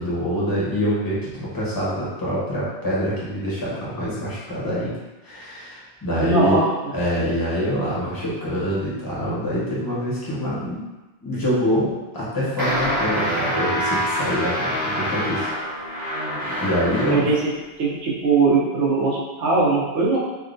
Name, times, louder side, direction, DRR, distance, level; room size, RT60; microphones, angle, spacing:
voice 1, 0.0-4.9 5.2-10.8 11.2-15.5 16.4-17.3, equal, 20° left, -8 dB, 0.8 m, -25 dB
voice 2, 6.2-6.6 17.1-17.4 17.8-20.2, right 3 dB, 80° right, -5 dB, 1.1 m, -20 dB
sound 1, 12.6-17.4, equal, 50° right, 0.9 m, -25 dB
3.4 x 2.1 x 2.5 m, 1.1 s
omnidirectional pair, 1.2 m